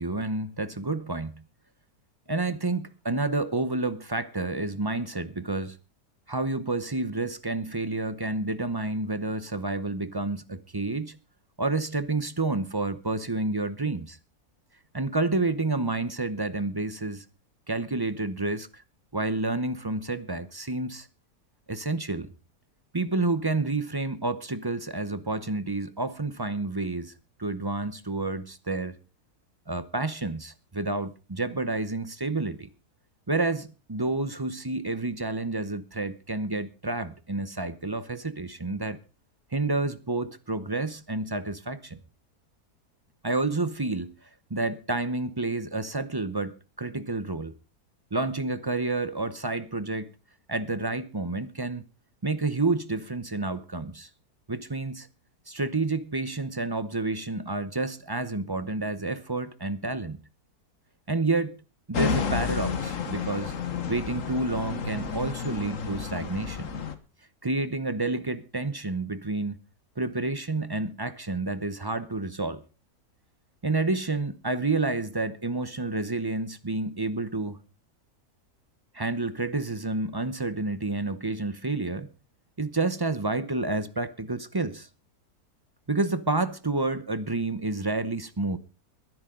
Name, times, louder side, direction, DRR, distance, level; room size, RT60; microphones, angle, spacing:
voice 1, 0.0-1.4 2.3-5.8 6.3-11.2 11.6-14.2 14.9-17.2 17.7-18.8 19.1-21.1 21.7-22.3 22.9-27.1 27.4-29.0 29.7-32.7 33.3-39.0 39.5-42.0 43.2-44.1 44.5-47.5 48.1-50.1 50.5-51.8 52.2-54.1 54.5-55.1 55.5-60.2 61.1-61.5 61.9-63.5 63.9-66.7 67.4-69.6 70.0-72.6 73.6-77.6 78.9-82.1 82.6-84.9 85.9-88.6, right 2 dB, 25° right, 0.6 m, -29 dB
sound 1, 61.9-66.9, left 5 dB, 55° left, 1.6 m, -31 dB
21.0 x 11.0 x 3.8 m
omnidirectional pair, 1.6 m